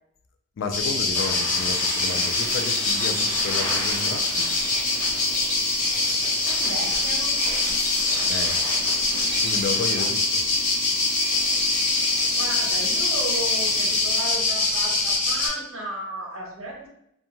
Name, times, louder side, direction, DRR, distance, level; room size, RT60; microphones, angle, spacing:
voice 1, 0.6-4.5 8.3-8.6 9.4-10.4, left 5 dB, 65° left, 6 dB, 0.3 m, -32 dB
sound 1, 0.7-15.5, left 3 dB, 35° left, 0.7 m, -24 dB
sound 2, 1.1-10.1, equal, 55° right, 1.1 m, -37 dB
sound 3, 1.2-14.2, left 1 dB, 15° left, 1.1 m, -36 dB
voice 2, 6.5-7.4 12.4-16.9, right 1 dB, 75° right, 0 dB, 0.8 m, -34 dB
2.6 x 2.3 x 2.8 m, 0.75 s
head